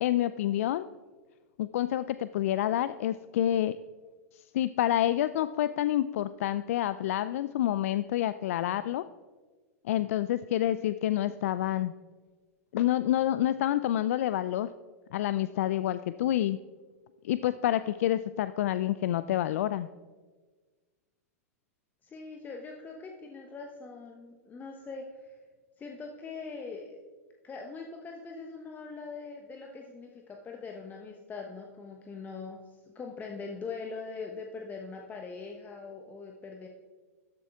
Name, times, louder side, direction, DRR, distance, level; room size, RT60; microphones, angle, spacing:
voice 1, 0.0-0.9 1.6-3.8 4.5-9.0 9.9-11.9 12.7-14.7 15.1-16.6 17.2-19.9, left 12 dB, 65° left, 14 dB, 0.3 m, -28 dB
voice 2, 22.0-25.4 25.8-27.0 27.4-36.7, left 4 dB, 20° left, 2 dB, 1.0 m, -42 dB
13.0 x 7.5 x 3.6 m, 1.4 s
hypercardioid pair, 105°, 8 cm